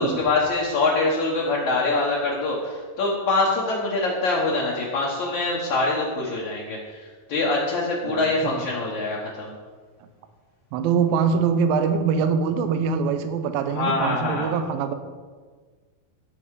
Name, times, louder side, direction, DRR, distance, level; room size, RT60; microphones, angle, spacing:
voice 1, 0.0-9.5 13.7-14.5, left 3 dB, 60° left, -4 dB, 2.4 m, -24 dB
voice 2, 8.0-8.6 10.7-14.9, right 6 dB, 80° right, 9 dB, 2.5 m, -23 dB
15.0 x 6.3 x 4.8 m, 1.5 s
omnidirectional pair, 4.3 m